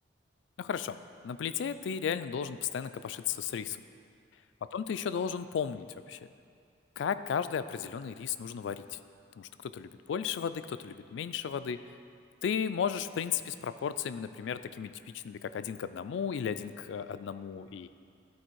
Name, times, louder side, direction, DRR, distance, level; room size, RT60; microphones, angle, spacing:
voice 1, 0.6-1.0 1.2-3.8 4.7-6.3 7.0-9.0 9.4-11.8 12.4-17.9, left 7 dB, 70° left, 12 dB, 0.3 m, -34 dB
12.5 x 4.1 x 4.6 m, 2.3 s
head